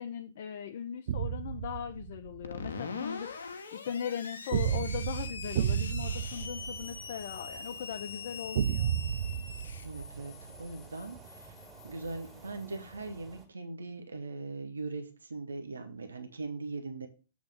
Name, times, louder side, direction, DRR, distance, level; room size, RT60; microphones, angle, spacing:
voice 1, 0.0-8.9, left 8 dB, 55° left, 6 dB, 0.6 m, -39 dB
sound 1, 1.1-2.5 4.5-7.5 8.5-10.7, right 9 dB, 60° right, 0.5 m, -32 dB
Screech, 2.4-12.9, left 4 dB, 75° left, 1.0 m, -43 dB
sound 2, 6.0-13.5, right 4 dB, 15° right, 2.4 m, -54 dB
voice 2, 9.8-10.3 10.6-11.6 11.8-17.1, right 3 dB, 80° right, 6 dB, 1.0 m, -40 dB
7.3 x 3.6 x 6.1 m, 0.33 s
figure-of-eight pair, 115°, 0 cm